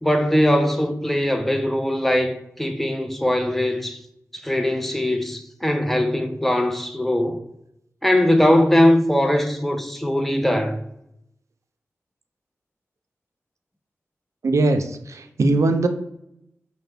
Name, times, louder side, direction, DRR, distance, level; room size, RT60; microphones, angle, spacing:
voice 1, 0.0-4.0 4.3-7.4 8.0-10.8, left 1 dB, 5° left, 0.5 m, -20 dB
voice 2, 14.4-15.9, right 2 dB, 70° right, 0.4 m, -20 dB
5.5 x 2.1 x 3.4 m
wide cardioid pair, 70°, 5 cm